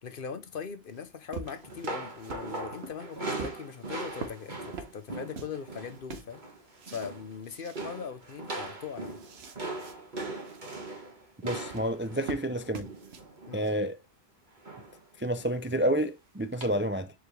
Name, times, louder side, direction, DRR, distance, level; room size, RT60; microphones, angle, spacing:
voice 1, 0.0-6.4 6.9-9.2 13.5-13.7, left 6 dB, 60° left, 1.0 m, -40 dB
sound 1, 0.5-5.6 5.9-7.1 7.4-7.8 8.2-8.3 8.7-10.0 10.3-10.8 11.5-13.7, right 4 dB, 85° right, 1.3 m, -44 dB
sound 2, 1.5-6.0 6.3-6.6 6.9-7.4 7.8-13.8 14.6-15.0 15.4-15.5 16.6-16.7, right 2 dB, 50° right, 1.9 m, -40 dB
voice 2, 11.4-12.9 13.5-14.0 15.2-17.1, right 1 dB, 20° right, 0.4 m, -29 dB
7.0 x 4.8 x 3.2 m
omnidirectional pair, 1.1 m